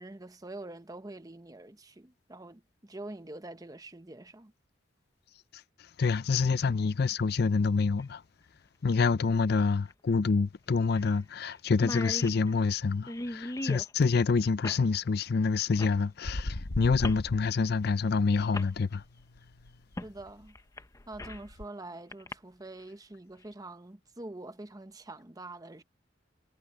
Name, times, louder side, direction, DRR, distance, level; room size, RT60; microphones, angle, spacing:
voice 1, 0.0-4.5 20.0-20.6 21.1-25.8, right 2 dB, 20° right, 0.9 m, -45 dB
voice 2, 6.0-8.2 8.8-19.0, left 4 dB, 60° left, 0.5 m, -27 dB
sound 1, 8.0-8.1 9.9-10.0 10.3-10.4 10.9-11.2 11.4-11.5 11.7-13.9 14.6-14.9 15.8-16.0 17.0-17.3 18.1-18.2 18.5-18.7 20.0-20.1 20.6-21.5 22.1-22.3, left 1 dB, 20° left, 0.8 m, -38 dB
sound 2, 16.2-18.1 18.4-21.6, left 1 dB, 85° left, 1.1 m, -39 dB
head